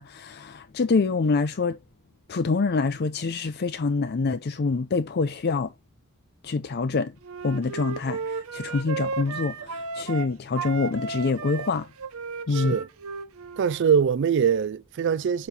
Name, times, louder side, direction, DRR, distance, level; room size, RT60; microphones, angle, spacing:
voice 1, 0.0-1.8 2.3-5.7 6.4-7.1 7.4-11.9 12.5-12.8, left 4 dB, 45° left, 0.5 m, -26 dB
Wind instrument woodwind instrument, 7.2-10.3 10.5-13.8, right 5 dB, 75° right, 0.8 m, -34 dB
voice 2, 12.5-12.9 13.6-15.5, right 7 dB, 55° right, 0.3 m, -23 dB
8.2 x 3.1 x 4.2 m
head